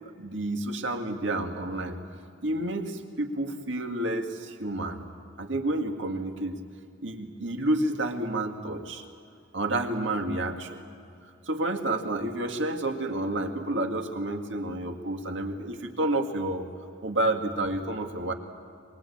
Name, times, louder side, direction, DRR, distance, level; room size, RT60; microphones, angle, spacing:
voice 1, 0.2-2.0 2.4-5.0 5.4-6.6 7.0-9.0 9.5-10.8 11.5-16.7 17.0-18.3, right 1 dB, 75° right, 4 dB, 2.1 m, -30 dB
23.5 x 22.0 x 8.6 m, 2.5 s
head